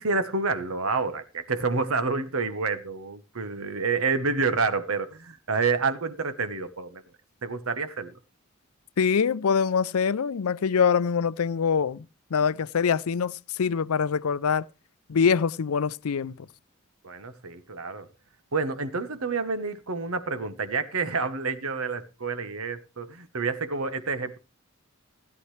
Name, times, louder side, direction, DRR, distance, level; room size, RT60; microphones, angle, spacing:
voice 1, 0.0-7.0 7.4-8.1 17.0-18.1 18.5-24.4, right 4 dB, 80° right, 1.2 m, -28 dB
voice 2, 9.0-12.1 12.3-14.7 15.1-16.5, left 6 dB, 90° left, 0.5 m, -24 dB
16.0 x 9.6 x 3.2 m
head